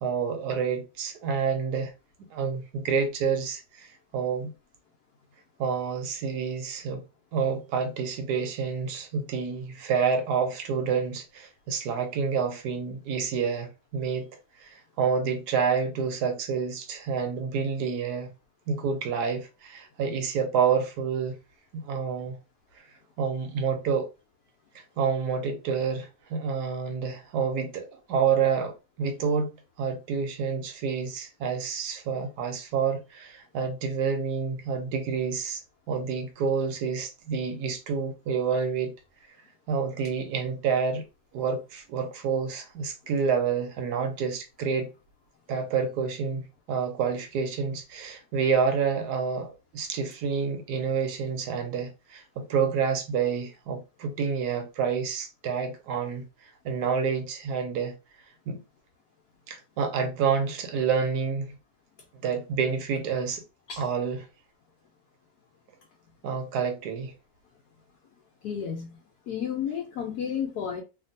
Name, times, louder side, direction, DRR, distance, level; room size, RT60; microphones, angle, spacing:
voice 1, 0.0-1.9 2.3-4.5 5.6-7.0 7.3-14.3 14.6-18.3 18.7-21.4 21.7-22.4 23.2-24.1 24.7-35.6 35.9-38.9 39.7-41.0 41.3-44.9 45.5-57.9 58.5-58.6 59.5-61.6 62.2-63.4 63.8-64.3 66.2-67.1, right 6 dB, 90° right, 1.3 m, -28 dB
voice 2, 68.4-68.9 69.3-70.8, left 8 dB, 75° left, 1.2 m, -31 dB
2.8 x 2.6 x 2.6 m
omnidirectional pair, 1.7 m